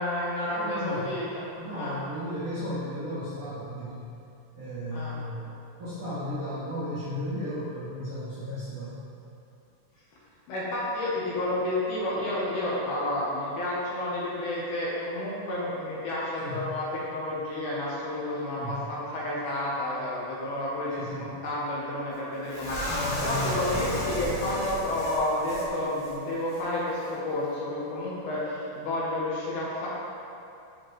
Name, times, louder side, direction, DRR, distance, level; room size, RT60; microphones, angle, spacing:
voice 1, 0.0-1.4 1.7-2.0 4.9-5.2 10.5-22.9 23.2-29.9, left 1 dB, 70° left, -6 dB, 2.1 m, -31 dB
voice 2, 0.5-1.1 1.6-4.1 4.5-5.5 5.8-9.0 16.4-16.7 18.5-18.8 21.0-21.3 22.9-23.7, left 1 dB, 55° right, -14 dB, 1.5 m, -34 dB
sound 1, 22.5-25.7 26.0-26.1 26.5-26.6, left 1 dB, 55° left, 1.8 m, -32 dB
6.5 x 5.0 x 3.0 m, 2.7 s
omnidirectional pair, 4.0 m